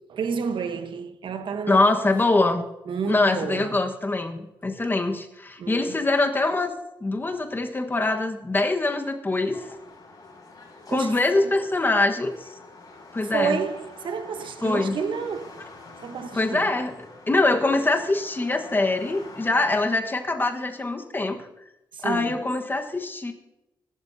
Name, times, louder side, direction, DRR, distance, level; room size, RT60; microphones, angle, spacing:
voice 1, 0.1-1.8 2.9-3.8 5.6-6.0 10.9-11.5 13.3-15.6 16.0-16.7 21.9-22.4, right 6 dB, 65° right, 1.1 m, -30 dB
voice 2, 1.7-2.7 3.1-6.7 7.0-9.6 10.9-12.5 13.1-13.6 14.6-15.0 16.3-21.5 22.0-23.3, left 2 dB, 25° left, 1.3 m, -24 dB
sound 1, 9.5-19.7, left 3 dB, 45° left, 6.2 m, -46 dB
24.0 x 12.0 x 2.7 m
wide cardioid pair, 115°, 9 cm